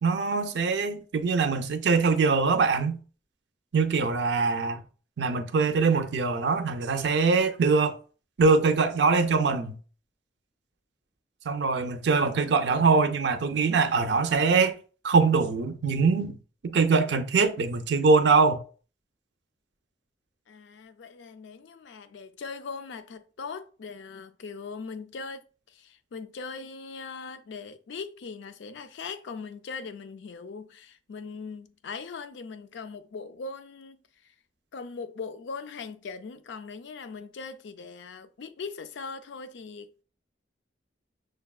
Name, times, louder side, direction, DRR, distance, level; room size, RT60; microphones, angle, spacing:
voice 1, 0.0-3.0 3.7-4.8 5.2-8.0 8.4-9.8 11.4-14.8 15.0-16.4 16.6-18.6, right 4 dB, 70° right, 0.4 m, -23 dB
voice 2, 20.5-34.3 34.7-40.0, left 4 dB, 75° left, 0.4 m, -40 dB
6.4 x 2.2 x 2.3 m
head